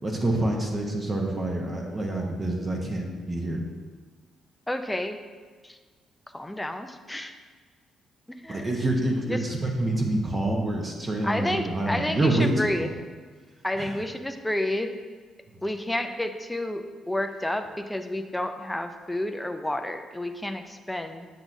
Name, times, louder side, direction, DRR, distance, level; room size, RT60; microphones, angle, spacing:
voice 1, 0.0-3.6 8.5-12.9 13.8-14.0 15.5-15.6, right 1 dB, 30° right, 0 dB, 1.0 m, -27 dB
voice 2, 4.7-5.2 5.6-5.8 6.3-7.4 8.3-8.7 9.3-9.4 11.2-12.9 13.6-14.9 15.6-21.3, left 1 dB, 5° left, 7 dB, 0.5 m, -30 dB
8.0 x 6.0 x 2.7 m, 1.5 s
cardioid pair, 90°, 0 cm